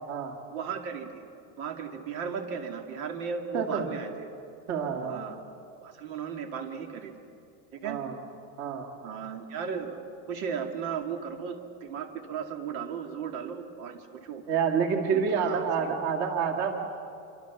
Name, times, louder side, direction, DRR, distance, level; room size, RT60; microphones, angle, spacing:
voice 1, 0.5-1.2 1.6-4.3 4.9-5.4 5.8-7.1 7.7-8.0 9.0-14.4 15.1-16.1, right 6 dB, 70° right, 5 dB, 2.4 m, -36 dB
voice 2, 3.5-3.9 4.7-5.2 7.8-8.1 8.6-8.9 14.5-16.7, right 6 dB, 40° right, 3 dB, 2.2 m, -28 dB
26.5 x 25.0 x 7.1 m, 2.6 s
cardioid pair, 175°, 43 cm